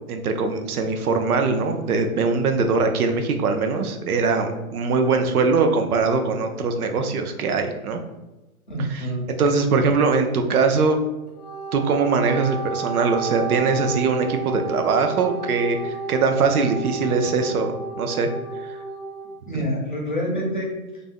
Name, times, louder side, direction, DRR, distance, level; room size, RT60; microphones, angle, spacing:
voice 1, 0.1-8.0 9.4-11.0 11.7-17.7 18.0-18.3 18.6-18.8 19.5-19.6, right 4 dB, 80° right, 6 dB, 0.6 m, -22 dB
voice 2, 8.7-9.3 9.6-9.8 19.5-21.0, equal, 35° left, -2 dB, 0.4 m, -27 dB
Wind instrument woodwind instrument, 11.3-19.3, right 5 dB, 90° left, 0.6 m, -31 dB
2.5 x 2.1 x 3.5 m, 1.0 s
hypercardioid pair, 170°, 43 cm